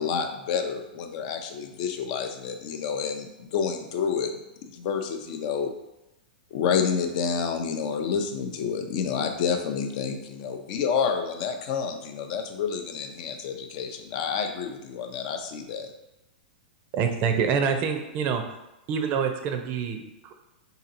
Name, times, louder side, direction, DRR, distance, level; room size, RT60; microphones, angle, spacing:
voice 1, 0.0-4.4 4.7-5.7 6.5-15.9, left 6 dB, 50° left, 5 dB, 0.5 m, -29 dB
voice 2, 16.9-18.6 18.9-20.3, right 6 dB, 40° right, 6 dB, 0.5 m, -26 dB
3.8 x 2.8 x 2.5 m, 0.94 s
hypercardioid pair, 125°, 5 cm